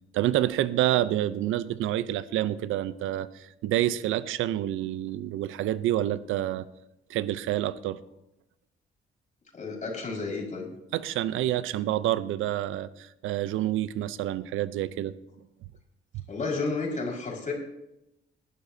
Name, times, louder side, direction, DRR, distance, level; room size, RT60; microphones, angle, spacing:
voice 1, 0.1-6.7 7.1-8.0 10.9-15.2, right 13 dB, 85° right, 16 dB, 0.6 m, -28 dB
voice 2, 9.5-10.7 16.3-17.5, left 3 dB, 40° left, -2 dB, 4.9 m, -31 dB
20.0 x 12.0 x 2.7 m, 0.89 s
cardioid pair, 90°, 20 cm